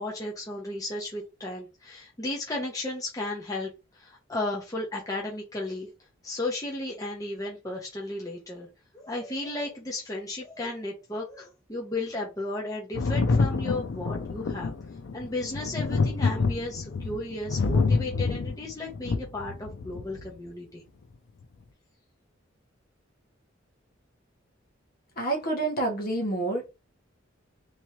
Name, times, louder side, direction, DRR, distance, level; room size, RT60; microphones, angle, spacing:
voice 1, 0.0-5.9 6.2-8.7 8.9-14.7 15.1-20.8, left 2 dB, 20° left, 0.9 m, -34 dB
Thunder, 12.9-20.3 21.4-21.5, left 4 dB, 70° left, 0.5 m, -27 dB
voice 2, 25.2-26.7, right 2 dB, 50° left, 1.3 m, -28 dB
3.5 x 3.1 x 3.0 m
head